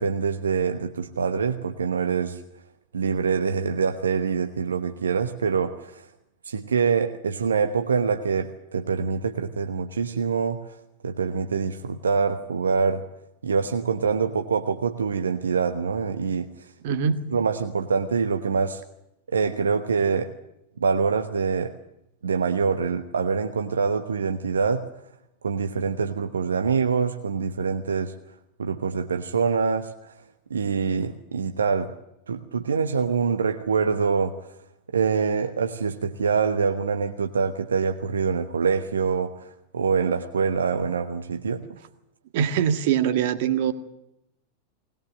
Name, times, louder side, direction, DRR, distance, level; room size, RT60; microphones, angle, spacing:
voice 1, 0.0-2.4 2.9-6.1 6.4-10.8 11.0-13.0 13.4-16.7 17.3-18.8 19.3-20.3 20.8-21.7 22.2-24.9 25.4-28.1 28.6-30.1 30.5-31.9 32.3-34.5 34.9-41.8, right 5 dB, 70° right, 7 dB, 1.1 m, -25 dB
voice 2, 16.8-17.2 42.3-43.7, right 8 dB, 50° right, 10 dB, 1.8 m, -23 dB
20.5 x 20.0 x 7.8 m, 0.85 s
figure-of-eight pair, 90°, 0 cm